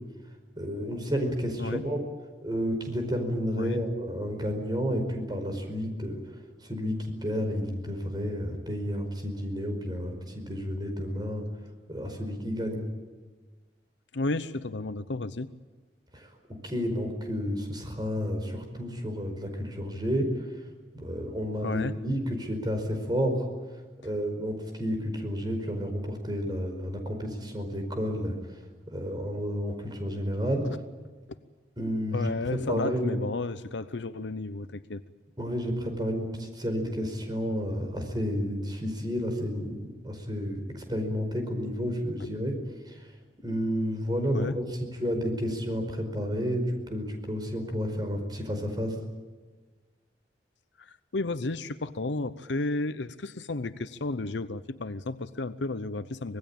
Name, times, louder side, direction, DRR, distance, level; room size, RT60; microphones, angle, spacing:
voice 1, 0.5-2.0 2.4-6.2 6.6-11.4 11.9-12.8 16.1-16.3 16.6-20.3 21.0-23.4 24.0-28.3 28.9-30.6 31.8-32.3 32.7-33.1 35.4-42.6 42.9-43.0 43.4-44.6 45.0-48.9, equal, 25° right, 5 dB, 5.0 m, -31 dB
voice 2, 14.1-15.5 21.6-22.0 30.6-30.8 32.1-35.0 44.3-44.6 50.8-56.4, left 2 dB, 85° left, 12 dB, 0.8 m, -32 dB
25.5 x 19.5 x 8.9 m, 1.3 s
head